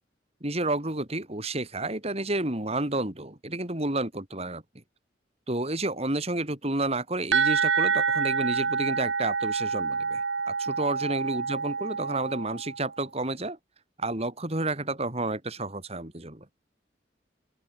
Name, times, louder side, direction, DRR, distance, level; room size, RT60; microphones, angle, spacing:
voice 1, 0.4-4.6 5.5-13.6 14.0-16.4, right 2 dB, 35° right, 3.2 m, -30 dB
sound 1, 7.3-12.9, right 5 dB, 85° right, 1.2 m, -27 dB
open air
head